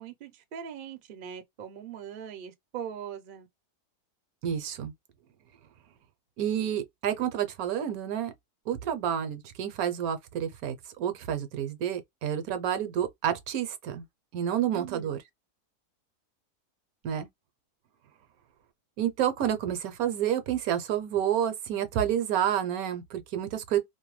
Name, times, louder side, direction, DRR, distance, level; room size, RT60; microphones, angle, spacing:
voice 1, 0.0-3.5 14.7-15.1, right 8 dB, 55° right, 0.5 m, -41 dB
voice 2, 4.4-4.9 6.4-8.3 8.7-14.0 14.3-15.2 17.0-17.3 19.0-23.8, right 10 dB, 75° right, 1.0 m, -29 dB
2.7 x 2.1 x 3.0 m
omnidirectional pair, 1.7 m